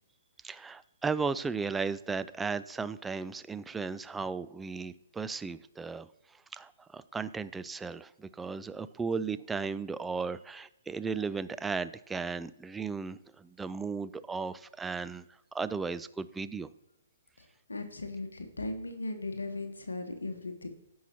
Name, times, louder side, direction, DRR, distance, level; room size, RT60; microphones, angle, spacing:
voice 1, 0.4-6.1 6.5-15.2 15.5-16.7, right 5 dB, 10° right, 14 dB, 0.3 m, -35 dB
voice 2, 17.4-20.7, left 2 dB, 80° left, 6 dB, 1.0 m, -38 dB
15.5 x 5.6 x 2.9 m, 0.88 s
figure-of-eight pair, 125°, 0 cm